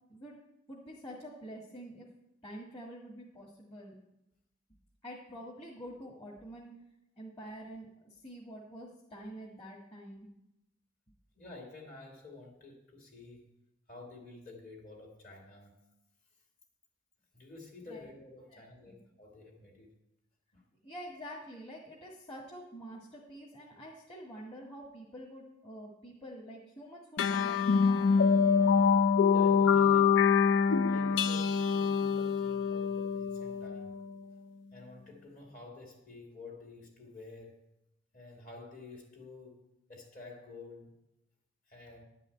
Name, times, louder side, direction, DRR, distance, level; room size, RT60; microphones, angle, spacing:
voice 1, 0.7-2.1 2.4-4.0 5.0-6.7 7.2-10.3 17.9-18.1 18.5-19.0 20.8-28.1, equal, 30° left, -4 dB, 1.8 m, -47 dB
voice 2, 11.3-13.5 13.9-15.7 17.3-19.9 20.5-20.6 29.3-30.3 30.7-33.9 34.7-37.6 38.1-40.9 41.7-42.0, left 3 dB, 45° left, -1 dB, 2.5 m, -50 dB
sound 1, 27.2-34.0, left 6 dB, 60° left, 0.4 m, -25 dB
11.0 x 5.5 x 8.5 m, 0.84 s
head